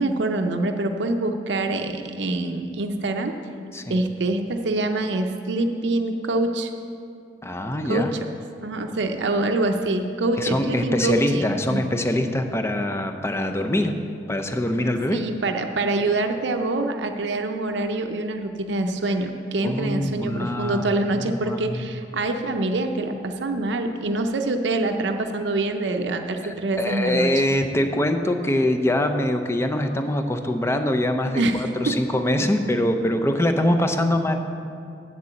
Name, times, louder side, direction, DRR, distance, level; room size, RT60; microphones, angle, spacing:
voice 1, 0.0-3.3 3.9-6.7 7.9-8.2 8.6-11.9 15.1-27.3 31.4-31.9 32.4-32.5, right 2 dB, 80° right, 5 dB, 0.6 m, -25 dB
voice 2, 7.4-8.1 10.4-14.0 14.3-15.3 19.6-21.9 26.4-34.4, left 1 dB, 15° left, 6 dB, 0.5 m, -24 dB
7.5 x 6.8 x 8.2 m, 2.4 s
head